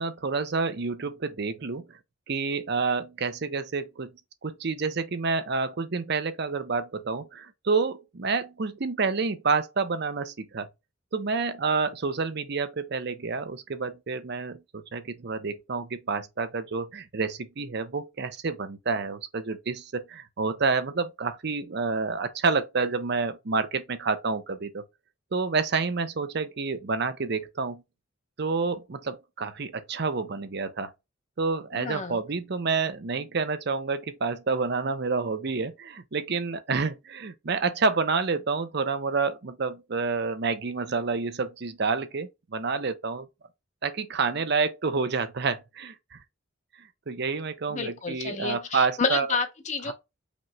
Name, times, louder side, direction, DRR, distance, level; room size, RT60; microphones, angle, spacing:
voice 1, 0.0-2.0 2.3-4.1 4.4-10.7 11.1-24.8 25.3-27.8 28.4-30.9 31.4-43.3 43.8-46.2 46.8-49.3 49.9-50.0, right 4 dB, 55° right, 0.7 m, -29 dB
voice 2, 31.7-32.2 47.7-49.9, left 4 dB, 35° left, 0.7 m, -30 dB
5.2 x 3.1 x 2.2 m
head